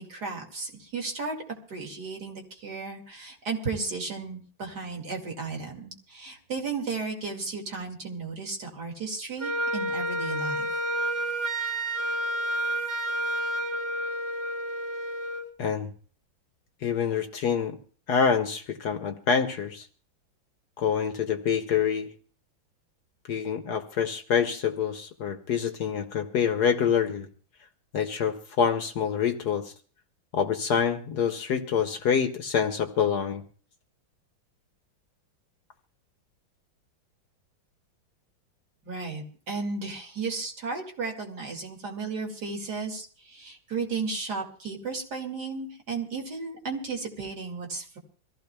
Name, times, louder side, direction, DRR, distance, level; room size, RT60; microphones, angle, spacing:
voice 1, 0.0-1.4 1.7-10.7 38.8-48.0, right 4 dB, 50° right, 1 dB, 2.7 m, -34 dB
Wind instrument woodwind instrument, 9.4-15.5, right 1 dB, 10° right, 1.8 m, -30 dB
voice 2, 15.6-15.9 16.8-17.7 18.1-19.9 20.8-22.1 23.3-27.3 27.9-29.7 30.3-33.4, left 7 dB, 60° left, 7 dB, 1.3 m, -26 dB
25.0 x 15.5 x 2.2 m, 0.42 s
omnidirectional pair, 2.2 m